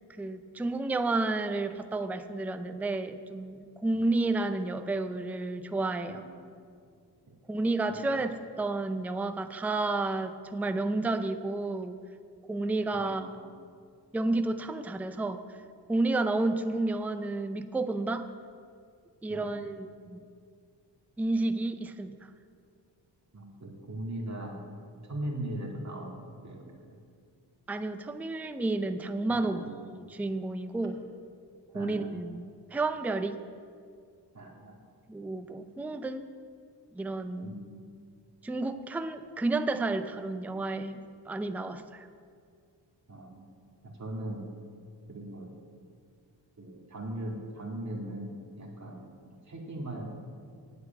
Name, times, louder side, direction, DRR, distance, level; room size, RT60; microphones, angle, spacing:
voice 1, 0.2-6.2 7.5-12.0 12.5-13.3 14.1-15.4 15.9-18.3 19.2-20.2 21.2-22.1 27.7-29.6 29.9-30.9 31.7-33.4 35.1-36.3 36.9-37.5 38.4-41.0 41.3-42.1, right 2 dB, 5° right, 9 dB, 0.4 m, -31 dB
voice 2, 6.1-6.5 7.3-7.4 7.9-8.2 12.9-13.5 19.3-19.8 23.3-24.6 25.1-27.0 29.3-29.8 31.7-32.4 34.3-34.8 37.4-37.9 43.1-43.5 43.8-44.5 45.1-45.5 46.6-49.1 49.5-50.1, right 1 dB, 40° right, -1 dB, 2.2 m, -40 dB
8.1 x 8.0 x 9.1 m, 2.2 s
wide cardioid pair, 115°, 45 cm